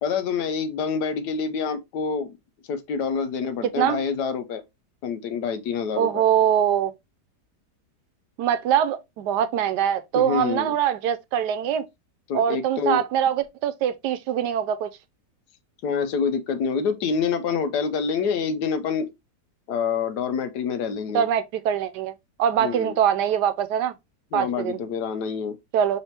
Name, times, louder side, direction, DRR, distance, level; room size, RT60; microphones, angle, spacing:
voice 1, 0.0-2.3 2.7-4.6 5.0-6.2 10.1-10.7 12.3-13.0 15.8-19.1 19.7-21.2 22.6-23.0 24.3-25.5, left 6 dB, 75° left, 1.3 m, -26 dB
voice 2, 6.0-6.9 8.4-11.8 12.3-14.9 21.1-22.1 22.4-23.9 24.3-24.8 25.7-26.0, right 9 dB, 80° right, 1.2 m, -23 dB
5.4 x 3.4 x 2.8 m
omnidirectional pair, 1.8 m